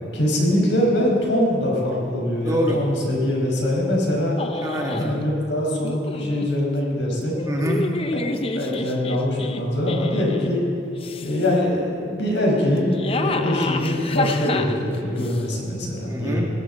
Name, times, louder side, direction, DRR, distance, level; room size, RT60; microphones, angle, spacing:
voice 1, 0.1-4.4 5.0-7.3 8.1-8.2 8.5-10.6 11.2-16.4, left 1 dB, 80° left, -2 dB, 5.0 m, -23 dB
voice 2, 2.4-2.9 4.6-5.2 7.5-7.9 16.0-16.4, equal, 20° right, -1 dB, 1.6 m, -25 dB
sound 1, 4.4-5.1 5.8-6.5 7.3-10.5 11.0-11.6 12.7-15.4, left 3 dB, 30° left, 0.6 m, -29 dB
20.5 x 17.0 x 4.1 m, 2.6 s
head